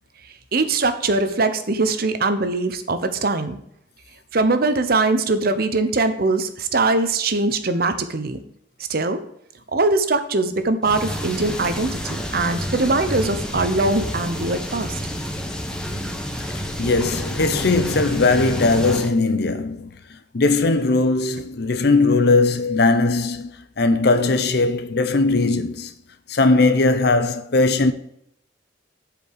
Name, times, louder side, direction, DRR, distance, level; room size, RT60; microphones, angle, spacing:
voice 1, 0.5-3.6 4.3-8.4 8.9-9.2 9.7-15.0 25.3-25.4, right 3 dB, 55° right, 0.9 m, -21 dB
sound 1, 10.8-19.1, equal, 5° left, 0.9 m, -29 dB
voice 2, 16.8-25.9 26.3-27.9, left 3 dB, 60° left, 0.8 m, -19 dB
7.8 x 5.1 x 6.7 m
head